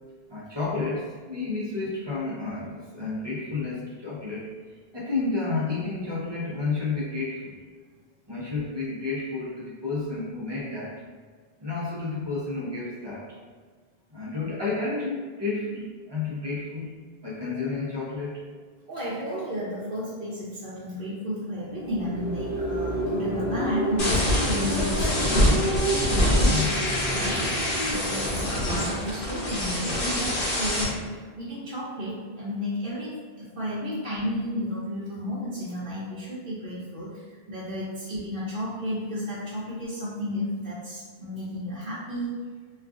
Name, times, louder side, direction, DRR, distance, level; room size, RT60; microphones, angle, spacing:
voice 1, 0.3-4.5 4.9-7.6 8.3-11.0 11.6-13.4 14.1-16.9 17.2-18.4 26.4-26.7 27.6-27.7, left 3 dB, 30° right, -6 dB, 0.6 m, -31 dB
voice 2, 18.9-25.6 26.1-26.6 27.1-27.6 27.9-42.3, equal, 60° right, -9 dB, 0.8 m, -32 dB
sound 1, 21.6-30.3, equal, 40° left, 0.8 m, -31 dB
sound 2, 24.0-30.8, equal, 60° left, 1.0 m, -25 dB
2.4 x 2.4 x 3.5 m, 1.5 s
omnidirectional pair, 1.0 m